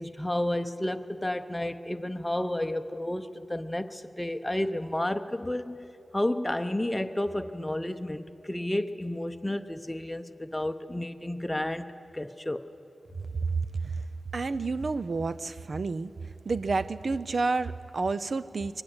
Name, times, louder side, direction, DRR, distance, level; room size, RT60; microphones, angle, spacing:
voice 1, 0.0-5.9 6.1-12.7, left 1 dB, 10° left, 7 dB, 0.7 m, -31 dB
voice 2, 14.3-16.1 16.5-18.8, right 3 dB, 60° right, 14 dB, 0.5 m, -30 dB
23.0 x 19.5 x 7.9 m, 2.6 s
wide cardioid pair, 120°, 0 cm